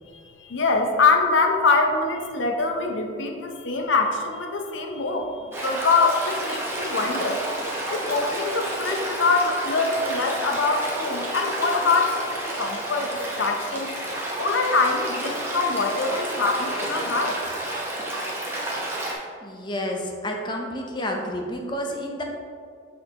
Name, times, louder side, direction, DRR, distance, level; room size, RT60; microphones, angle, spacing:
voice 1, 0.1-7.4 7.9-13.9 14.4-17.4, left 3 dB, 80° left, 3 dB, 0.7 m, -24 dB
Stream, 5.5-19.2, right 1 dB, 10° right, 0.8 m, -30 dB
voice 2, 19.4-22.2, left 1 dB, 25° left, 1 dB, 0.6 m, -30 dB
6.0 x 5.8 x 2.9 m, 2.2 s
head